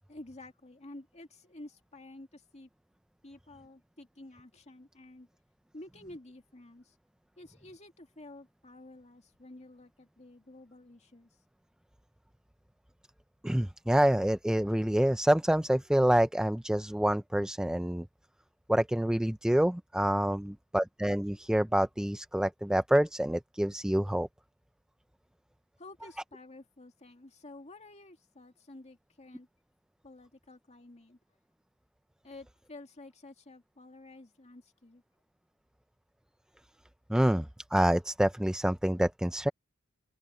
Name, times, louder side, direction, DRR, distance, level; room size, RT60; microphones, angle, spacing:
voice 1, 0.1-2.7 3.2-5.3 5.7-6.9 7.4-11.3 25.8-29.5 30.0-31.2 32.2-35.0, left 2 dB, 30° left, 2.2 m, -51 dB
voice 2, 13.4-18.1 18.7-24.3 37.1-39.5, right 1 dB, 5° right, 0.3 m, -27 dB
head